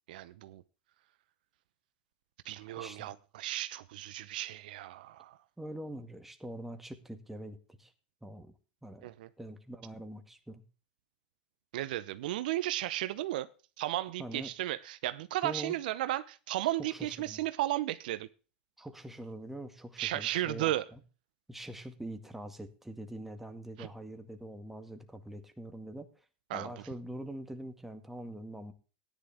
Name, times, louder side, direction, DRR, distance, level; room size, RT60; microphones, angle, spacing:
voice 1, 0.1-0.6 2.4-5.4 9.0-9.3 11.7-13.5 13.8-18.3 20.0-20.9 23.8-23.9 26.5-26.7, right 15 dB, 70° right, 0.8 m, -34 dB
voice 2, 2.8-3.1 5.6-7.9 8.2-8.5 8.8-9.1 9.4-10.6 14.2-14.5 15.4-15.7 16.8-17.4 18.8-21.0 21.5-26.1 26.5-28.7, right 1 dB, 5° right, 2.0 m, -44 dB
14.5 x 10.5 x 3.5 m
hypercardioid pair, 95°, 5 cm